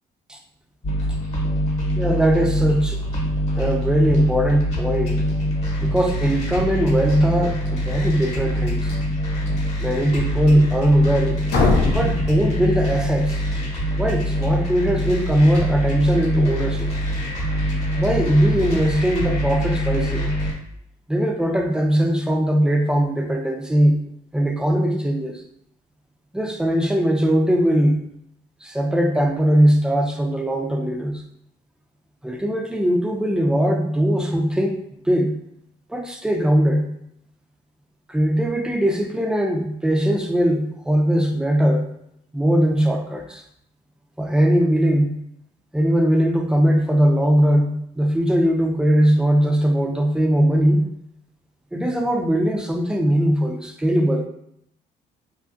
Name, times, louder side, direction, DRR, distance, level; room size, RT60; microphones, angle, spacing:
sound 1, 0.8-20.5, equal, 40° left, 1.0 m, -24 dB
voice 1, 2.0-3.0 3.6-5.2 5.8-8.9 9.8-11.4 11.9-13.4 14.0-16.9 18.0-20.3 21.1-24.0 24.3-25.4 26.3-28.0 28.6-31.2 32.2-34.8 35.1-35.3 35.9-36.9 38.1-41.9 42.3-43.4 44.2-45.1 45.7-50.9 51.7-54.3, equal, 5° right, 3 dB, 0.3 m, -20 dB
sound 2, 11.5-13.4, left 3 dB, 75° left, 0.6 m, -22 dB
3.0 x 2.4 x 2.5 m, 0.74 s
cardioid pair, 110°, 17 cm